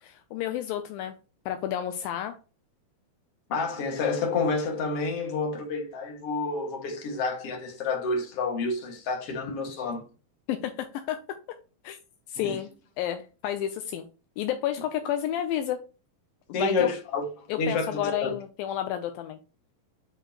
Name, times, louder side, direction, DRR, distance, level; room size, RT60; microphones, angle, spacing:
voice 1, 0.0-1.1 1.5-2.4 10.5-11.2 11.8-12.0 12.3-12.7 13.0-14.1 14.4-15.8 16.5-16.9 17.5-19.4, left 11 dB, 80° left, 2.3 m, -31 dB
voice 2, 3.5-10.0 12.4-12.5 16.5-17.2 17.6-18.3, left 4 dB, 45° left, 2.5 m, -29 dB
10.0 x 4.8 x 3.0 m
omnidirectional pair, 4.4 m